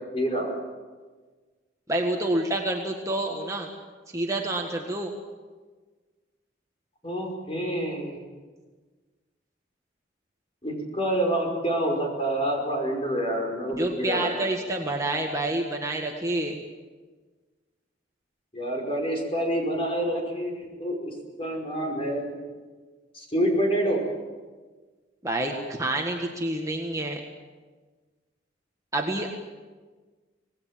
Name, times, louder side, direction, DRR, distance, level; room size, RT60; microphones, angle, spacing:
voice 1, 0.1-0.5 7.0-8.2 10.6-14.3 18.5-22.3 23.1-24.0, right 1 dB, 30° left, 1 dB, 5.4 m, -27 dB
voice 2, 1.9-3.7 4.1-5.1 13.7-16.6 25.2-27.2 28.9-29.3, right 1 dB, 15° right, 1 dB, 1.7 m, -28 dB
26.0 x 19.0 x 7.5 m, 1.4 s
head